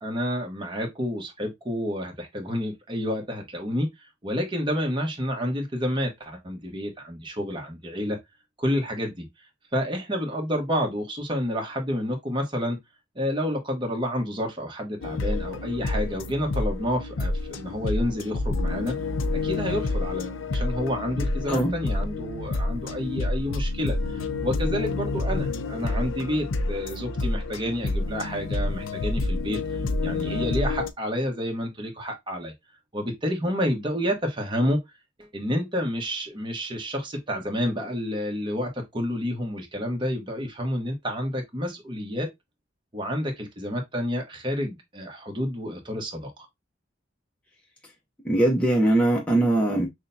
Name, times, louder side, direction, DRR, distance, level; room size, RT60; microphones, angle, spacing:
voice 1, 0.0-3.9 4.2-8.2 8.6-9.2 9.7-12.8 13.1-18.9 19.4-29.6 30.0-32.5 32.9-34.8 35.2-42.3 42.9-46.3, equal, 25° right, 1.1 m, -29 dB
sound 1, 15.0-30.9, left 2 dB, 85° left, 0.5 m, -28 dB
voice 2, 48.2-49.9, right 1 dB, 5° left, 0.7 m, -21 dB
6.1 x 2.2 x 2.7 m
head